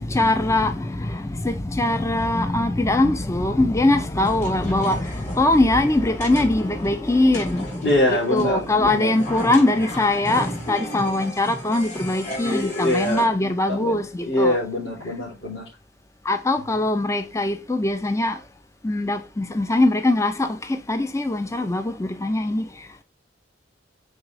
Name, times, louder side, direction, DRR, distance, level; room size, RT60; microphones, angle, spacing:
voice 1, 0.0-14.6 16.2-18.4 18.8-22.7, left 2 dB, 15° left, 0.5 m, -22 dB
sound 1, 4.2-13.2, equal, 40° left, 2.7 m, -34 dB
voice 2, 7.8-9.1 12.4-13.3 13.7-15.6, left 1 dB, 60° left, 4.1 m, -24 dB
6.4 x 4.0 x 4.9 m
head